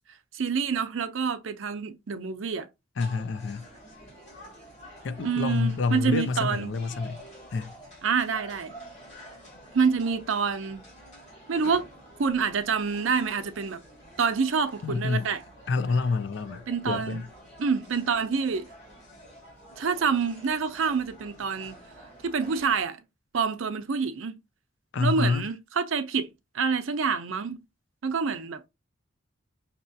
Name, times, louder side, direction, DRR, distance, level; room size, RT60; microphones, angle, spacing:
voice 1, 0.3-2.7 5.2-6.8 8.0-8.7 9.7-10.9 11.5-11.9 12.2-13.8 14.2-15.4 16.7-17.2 17.6-18.7 19.8-21.8 22.2-23.0 23.3-24.4 25.0-26.3 26.5-27.6 28.0-28.7, right 5 dB, 80° right, 0.6 m, -27 dB
voice 2, 3.0-3.6 5.0-7.2 7.5-7.7 14.8-15.3 15.7-17.2 24.9-25.5, left 4 dB, 65° left, 0.4 m, -27 dB
sound 1, 3.0-22.8, equal, 35° left, 2.0 m, -49 dB
5.4 x 2.9 x 2.7 m
head